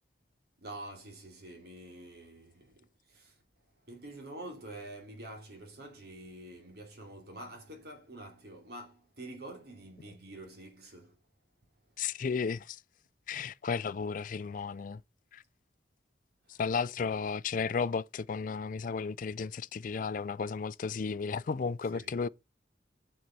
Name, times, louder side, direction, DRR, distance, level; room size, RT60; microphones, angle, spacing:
voice 1, 0.6-3.3 3.9-11.2 16.4-16.6 21.9-22.1, right 1 dB, 60° right, 3.1 m, -47 dB
voice 2, 12.0-12.8 13.3-15.0 15.3-15.4 16.6-22.3, left 5 dB, 45° left, 0.4 m, -33 dB
7.9 x 7.7 x 4.1 m
head